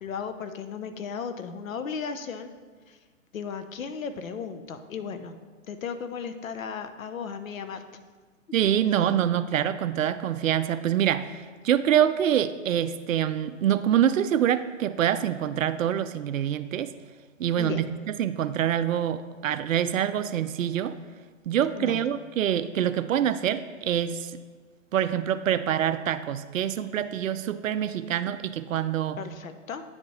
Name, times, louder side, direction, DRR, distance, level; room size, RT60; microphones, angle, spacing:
voice 1, 0.0-2.5 2.9-3.0 3.3-5.4 5.7-7.8 17.6-17.8 21.8-22.0 29.2-29.8, left 6 dB, 80° left, 9 dB, 0.9 m, -35 dB
voice 2, 8.5-16.9 17.4-21.0 21.5-24.4 24.9-29.2, right 10 dB, 80° right, 12 dB, 0.5 m, -25 dB
9.6 x 7.3 x 3.2 m, 1.5 s
hypercardioid pair, 150°, 39 cm